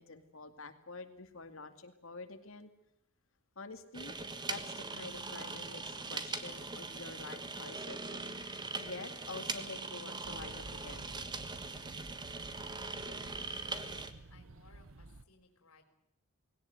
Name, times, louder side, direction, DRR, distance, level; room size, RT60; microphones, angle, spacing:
voice 1, 0.0-2.7 3.6-4.1 4.5-11.2, left 3 dB, 65° left, 7 dB, 2.4 m, -48 dB
sound 1, 3.9-14.1, right 3 dB, 20° right, 1.5 m, -41 dB
sound 2, 10.2-15.3, right 2 dB, 65° right, 1.0 m, -52 dB
voice 2, 13.0-15.8, left 3 dB, 85° left, 7 dB, 4.1 m, -62 dB
20.5 x 18.0 x 9.4 m, 0.81 s
head